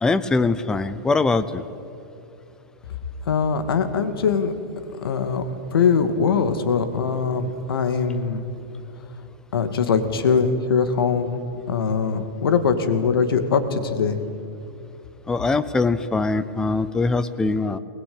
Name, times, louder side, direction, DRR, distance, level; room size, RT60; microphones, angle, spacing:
voice 1, 0.0-1.6 15.3-17.8, left 3 dB, 5° left, 13 dB, 0.5 m, -22 dB
voice 2, 3.3-4.5 5.0-5.4 5.7-8.4 9.5-11.4 11.7-14.2, left 6 dB, 85° left, 9 dB, 2.4 m, -22 dB
21.0 x 20.5 x 8.9 m, 2.7 s
supercardioid pair, 170°, 12 cm